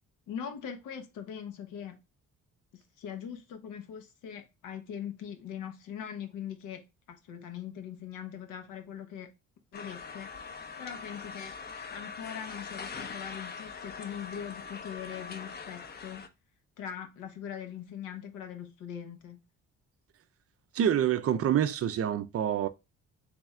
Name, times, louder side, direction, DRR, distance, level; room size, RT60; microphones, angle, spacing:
voice 1, 0.3-2.0 2.7-9.3 9.7-11.6 11.9-16.2 16.8-19.4, left 8 dB, 85° left, 0.8 m, -41 dB
sound 1, 9.7-16.3, left 5 dB, 35° left, 0.5 m, -42 dB
voice 2, 20.7-22.7, right 10 dB, 50° right, 0.4 m, -27 dB
3.3 x 3.1 x 3.5 m
cardioid pair, 90°, 30 cm